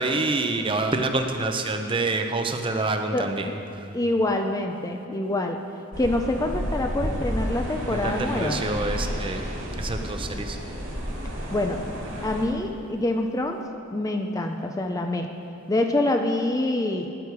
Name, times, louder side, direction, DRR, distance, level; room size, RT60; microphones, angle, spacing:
voice 1, 0.0-3.9 7.9-9.5 9.8-10.6, right 2 dB, 25° right, 5 dB, 0.6 m, -27 dB
voice 2, 3.1-3.5 3.9-5.6 6.0-8.6 11.5-11.8 12.2-13.6 13.9-15.3 15.7-17.1, left 1 dB, 15° left, 4 dB, 0.4 m, -26 dB
sound 1, 5.9-12.4, equal, 70° right, 2.9 m, -31 dB
12.5 x 10.0 x 4.7 m, 2.8 s
head